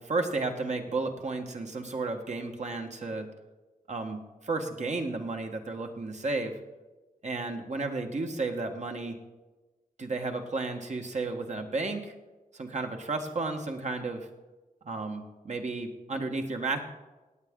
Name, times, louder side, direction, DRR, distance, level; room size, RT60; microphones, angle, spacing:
voice 1, 0.0-3.3 3.9-6.5 7.2-9.2 10.0-12.1 12.5-14.3 14.8-16.8, right 3 dB, 50° right, 3 dB, 1.4 m, -33 dB
18.5 x 8.2 x 3.7 m, 1.2 s
wide cardioid pair, 85°, 15 cm